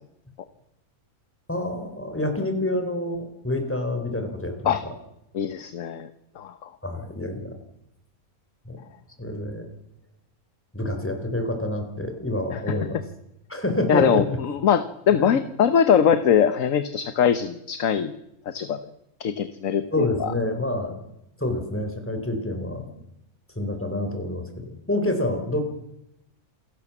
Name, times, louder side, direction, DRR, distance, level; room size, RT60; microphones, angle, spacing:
voice 1, 1.5-4.9 6.8-7.5 8.7-8.8 9.2-9.7 10.7-13.0 13.5-14.4 15.2-15.4 19.9-20.9 21.4-23.0 23.6-25.6, left 1 dB, 10° left, 5 dB, 4.2 m, -28 dB
voice 2, 5.3-6.1 6.4-6.7 12.5-12.8 13.9-18.1 18.5-18.8 19.2-20.3, left 8 dB, 65° left, 11 dB, 1.4 m, -22 dB
28.0 x 18.0 x 7.2 m, 0.82 s
omnidirectional pair, 1.5 m